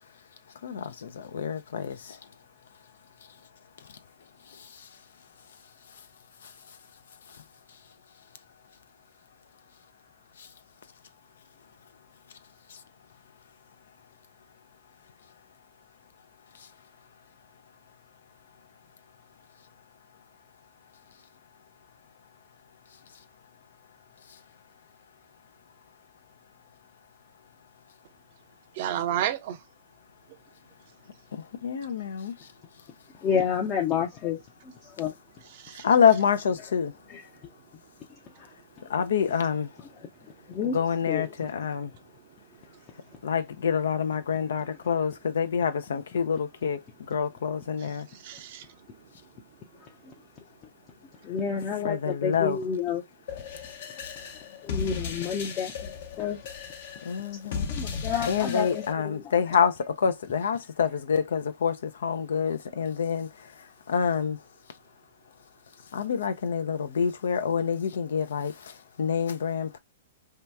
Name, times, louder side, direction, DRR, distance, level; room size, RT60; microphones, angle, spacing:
voice 1, 0.6-2.0 31.3-32.3 35.8-36.9 38.9-39.7 40.7-41.9 43.2-46.8 47.1-48.1 51.8-52.6 57.1-57.7 58.3-61.8 62.0-63.3 63.9-64.4 65.9-68.5 69.0-69.8, left 7 dB, 80° left, 0.4 m, -26 dB
voice 2, 28.7-29.6 35.6-35.9 42.7-42.8 48.1-48.7 49.0-49.1, right 11 dB, 55° right, 0.6 m, -31 dB
voice 3, 33.2-35.1 37.1-37.3 38.4-38.5 38.9-39.0 40.5-40.8 41.1-41.3 50.0-50.1 51.2-53.0 54.6-56.4 57.7-59.3, left 7 dB, 35° left, 0.6 m, -30 dB
sound 1, 53.3-58.9, left 6 dB, 60° left, 0.8 m, -36 dB
2.8 x 2.2 x 3.3 m
hypercardioid pair, 125°, 0 cm